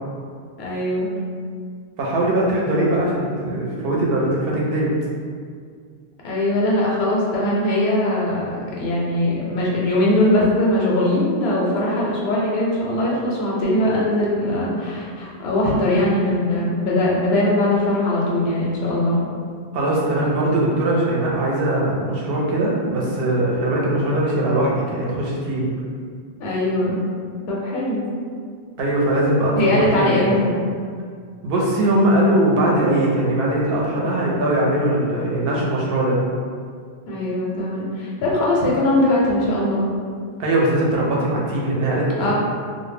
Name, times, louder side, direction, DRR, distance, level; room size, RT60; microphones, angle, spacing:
voice 1, 0.6-1.1 6.2-19.2 26.4-27.0 27.5-28.1 29.6-30.6 37.1-39.9 42.2-42.3, left 1 dB, 85° left, -5 dB, 0.8 m, -20 dB
voice 2, 2.0-4.9 19.7-25.7 28.8-30.4 31.4-36.2 40.4-42.3, right 1 dB, 70° right, -4 dB, 0.8 m, -20 dB
2.1 x 2.1 x 3.2 m, 2.1 s
omnidirectional pair, 1.0 m